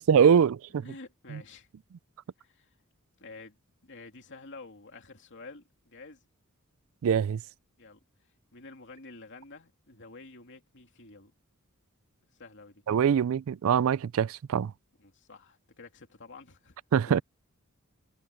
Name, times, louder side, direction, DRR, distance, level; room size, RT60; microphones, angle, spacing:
voice 1, 0.0-0.8 7.0-7.4 12.9-14.7 16.9-17.2, right 7 dB, 65° right, 0.4 m, -23 dB
voice 2, 0.8-1.7 2.4-2.7 3.2-3.6 3.8-6.2 7.8-8.0 8.5-11.3 12.3-12.8 15.0-16.8 17.0-17.2, left 3 dB, 55° left, 2.8 m, -49 dB
head